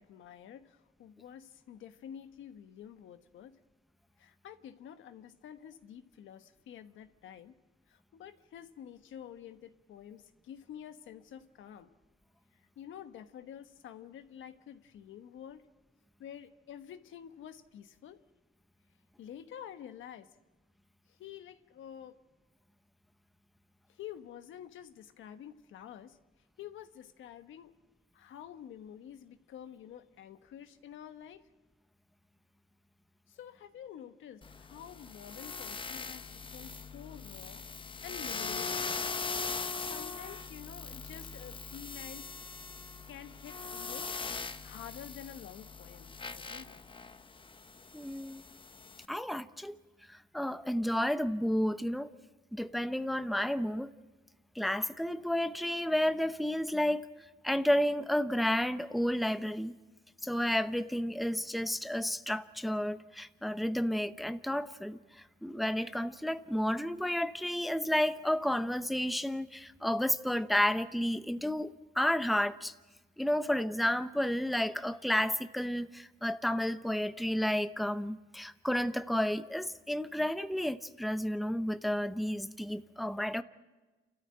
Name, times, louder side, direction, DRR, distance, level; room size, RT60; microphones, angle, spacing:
voice 1, 0.0-3.6 4.2-7.5 7.9-11.9 12.8-15.6 16.2-18.2 19.2-20.3 21.2-22.1 23.9-26.2 26.6-27.7 28.1-31.5 33.3-37.6 38.0-39.0 39.5-42.3 43.1-46.8, left 9 dB, 75° left, 1.3 m, -49 dB
sound 1, 34.4-49.0, left 4 dB, 25° left, 0.9 m, -41 dB
voice 2, 47.9-48.4 49.1-49.8 50.1-52.1 52.5-53.9 54.6-57.1 57.4-59.7 60.2-65.0 65.4-72.7 73.2-83.4, left 1 dB, ahead, 0.8 m, -31 dB
29.0 x 13.5 x 8.9 m
cardioid pair, 90°, 20 cm